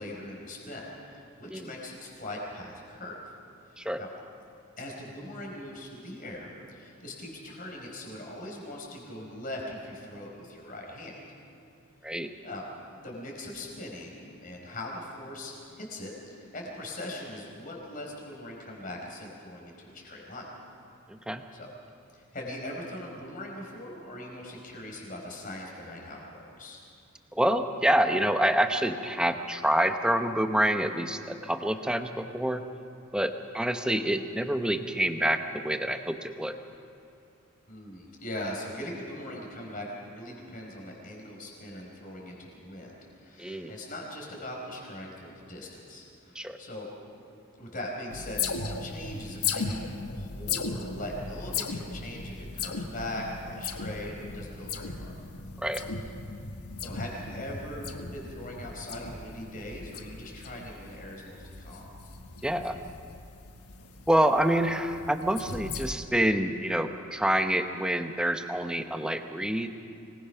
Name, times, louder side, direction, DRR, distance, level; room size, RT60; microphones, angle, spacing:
voice 1, 0.0-3.2 3.7-4.1 4.8-11.1 12.4-20.4 21.5-21.7 22.1-26.8 37.7-46.9 47.6-55.1 56.8-61.9, left 1 dB, 40° left, -1 dB, 4.6 m, -40 dB
voice 2, 21.1-21.4 27.3-32.6 33.1-36.6 43.4-43.7 46.3-46.6 55.6-55.8 62.4-62.8 64.1-69.7, right 1 dB, 5° right, 7 dB, 0.8 m, -27 dB
sound 1, 48.1-65.9, left 5 dB, 85° left, 1.3 m, -37 dB
25.0 x 19.5 x 5.7 m, 2.5 s
head